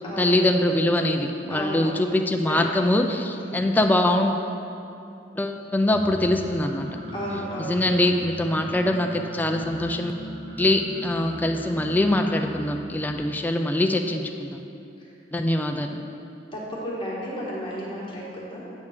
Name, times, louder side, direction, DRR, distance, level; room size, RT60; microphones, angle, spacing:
voice 1, 0.2-4.4 5.4-6.9 7.7-10.1 10.6-14.6 15.3-16.0, left 1 dB, 10° left, 4 dB, 0.3 m, -23 dB
voice 2, 1.5-2.1 2.5-2.6 3.3-3.6 7.1-7.8 16.5-18.7, equal, 30° left, -6 dB, 1.4 m, -33 dB
sound 1, 5.9-13.2, equal, 80° right, 1.3 m, -38 dB
8.2 x 3.6 x 6.5 m, 2.7 s
head